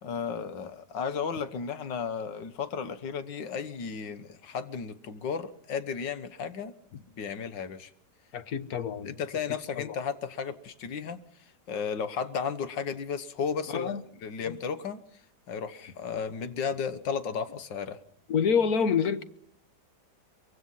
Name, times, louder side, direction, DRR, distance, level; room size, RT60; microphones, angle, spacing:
voice 1, 0.0-6.8 7.1-7.9 9.0-11.2 11.7-15.0 15.5-18.0, left 6 dB, 80° left, 1.9 m, -34 dB
voice 2, 8.3-9.2 9.8-10.0 13.7-14.0 14.4-14.6 18.3-19.2, left 6 dB, 60° left, 1.6 m, -27 dB
24.0 x 23.5 x 5.7 m
omnidirectional pair, 1.9 m